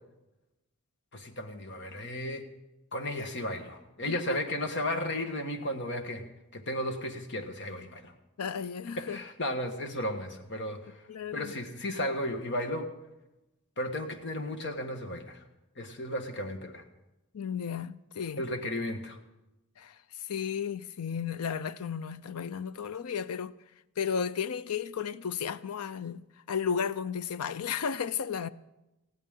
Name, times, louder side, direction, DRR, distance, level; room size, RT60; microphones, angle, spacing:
voice 1, 1.1-2.4 2.9-6.2 6.5-8.1 9.0-11.0 11.3-12.9 13.8-15.4 15.8-16.8 18.4-19.2, left 1 dB, 50° left, 1.5 m, -34 dB
voice 2, 4.1-4.4 8.4-9.2 11.1-11.5 17.3-18.4 19.8-23.5 24.0-28.5, left 7 dB, 80° left, 0.5 m, -34 dB
19.5 x 15.5 x 3.7 m
head